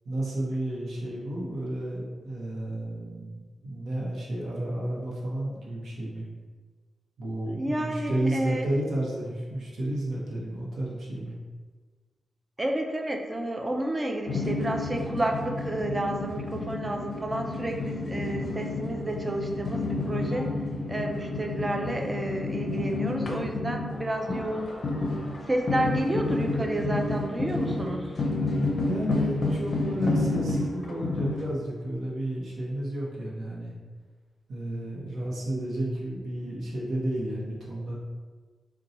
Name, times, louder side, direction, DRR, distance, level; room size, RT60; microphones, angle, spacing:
voice 1, 0.0-6.3 7.2-11.4 28.4-33.7 34.5-37.9, right 1 dB, 80° right, -4 dB, 0.8 m, -32 dB
voice 2, 7.6-8.7 12.6-20.5 20.9-24.7 25.5-28.2, right 1 dB, 20° right, 2 dB, 0.4 m, -30 dB
sound 1, 14.3-31.5, left 2 dB, 50° left, 0.5 m, -30 dB
2.7 x 2.2 x 4.0 m, 1.4 s
wide cardioid pair, 135°, 0 cm